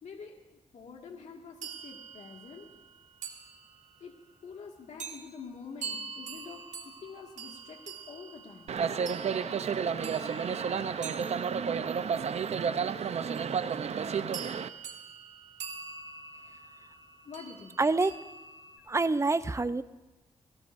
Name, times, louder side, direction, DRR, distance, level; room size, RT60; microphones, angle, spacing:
voice 1, 0.0-2.7 4.0-4.2 4.4-8.8 11.0-11.1 17.2-17.8, left 5 dB, 75° left, 0 dB, 2.0 m, -47 dB
sound 1, 1.6-4.1 5.0-5.3 5.8-12.2 13.7-14.0 14.3-18.8, right 5 dB, 80° right, 2.0 m, -45 dB
sound 2, 8.7-14.7, right 6 dB, 60° right, 0.7 m, -31 dB
voice 2, 17.8-18.1 18.9-19.8, right 3 dB, 25° right, 13 dB, 0.7 m, -26 dB
24.0 x 17.0 x 2.7 m, 1.1 s
cardioid pair, 65°, 12 cm